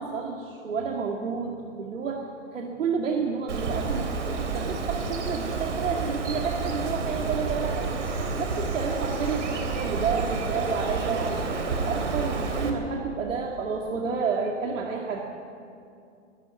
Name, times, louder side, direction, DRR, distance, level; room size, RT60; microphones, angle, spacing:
voice 1, 0.0-2.3 2.5-8.0 8.4-11.5 11.9-15.3, right 5 dB, 80° right, 0 dB, 2.4 m, -30 dB
Bird, 3.5-12.7, right 4 dB, 65° right, 3.6 m, -30 dB
21.5 x 13.5 x 9.1 m, 2.5 s
hypercardioid pair, 170°, 38 cm